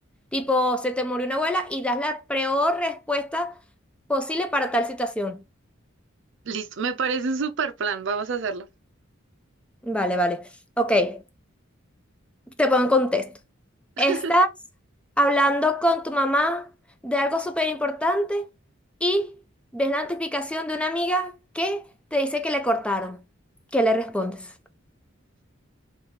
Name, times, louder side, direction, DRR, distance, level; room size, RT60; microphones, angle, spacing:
voice 1, 0.3-3.6 4.1-5.4 9.8-10.5 10.8-11.2 12.6-13.4 14.0-14.5 15.2-16.7 17.0-18.4 19.0-19.3 19.7-21.8 22.1-23.2 23.7-24.5, equal, 5° left, 0.4 m, -24 dB
voice 2, 6.5-8.7 14.0-14.3, right 5 dB, 65° right, 0.5 m, -27 dB
3.3 x 2.9 x 3.8 m
head